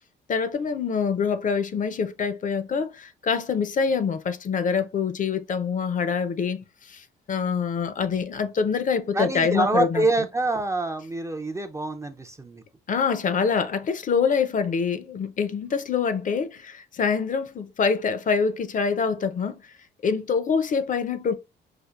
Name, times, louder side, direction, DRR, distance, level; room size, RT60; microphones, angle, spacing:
voice 1, 0.3-6.6 6.9-10.0 12.9-19.6 20.0-21.3, left 6 dB, 40° left, 0.5 m, -25 dB
voice 2, 9.1-12.6, right 2 dB, 15° right, 0.4 m, -26 dB
5.0 x 2.4 x 2.3 m
cardioid pair, 90°, 20 cm